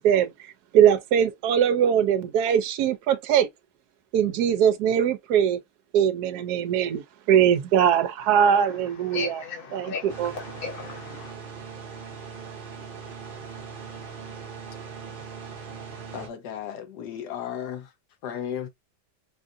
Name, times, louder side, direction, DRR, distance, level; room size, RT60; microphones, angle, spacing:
voice 1, 0.0-3.5 4.1-5.6 5.9-9.4 9.7-9.9 10.2-10.3, right 9 dB, 70° right, 1.1 m, -21 dB
voice 2, 8.2-11.3, left 4 dB, 35° left, 1.4 m, -37 dB
sound 1, 10.1-16.3, right 6 dB, 35° right, 1.0 m, -40 dB
voice 3, 16.1-17.9 18.2-18.7, left 9 dB, 70° left, 1.4 m, -34 dB
4.9 x 2.4 x 2.6 m
omnidirectional pair, 1.9 m